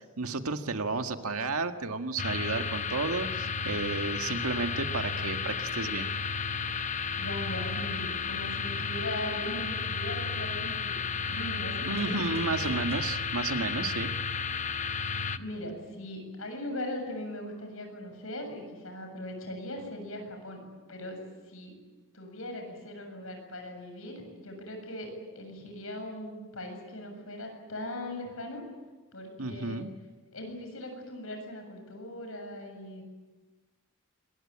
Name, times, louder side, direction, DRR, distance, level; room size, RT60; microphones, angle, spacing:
voice 1, 0.2-6.1 11.8-14.1 29.4-29.9, right 3 dB, 90° right, 6 dB, 1.8 m, -32 dB
sound 1, 2.2-15.4, left 5 dB, 35° left, 0.8 m, -33 dB
voice 2, 7.2-11.0 11.3-12.5 15.3-21.2 21.5-21.8 22.1-28.6 29.1-29.9 30.3-33.0, left 1 dB, 75° left, 4 dB, 7.4 m, -39 dB
sound 2, 12.0-14.7, right 4 dB, 30° right, 3.6 m, -46 dB
26.0 x 22.0 x 8.8 m, 1.3 s
head